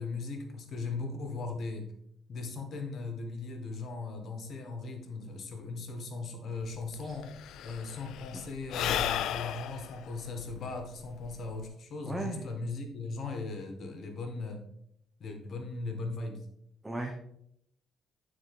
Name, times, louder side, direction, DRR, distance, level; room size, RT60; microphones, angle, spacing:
voice 1, 0.0-1.9 2.3-7.3 7.6-14.6 15.2-16.5, left 3 dB, 60° left, 5 dB, 1.5 m, -38 dB
Sigh / Breathing, 6.6-6.7 6.9-11.7, left 11 dB, 80° left, 0.4 m, -35 dB
voice 2, 12.1-12.4 16.8-17.1, right 2 dB, 15° right, 2 dB, 1.0 m, -35 dB
8.9 x 4.2 x 4.8 m, 0.74 s
cardioid pair, 85°, 0 cm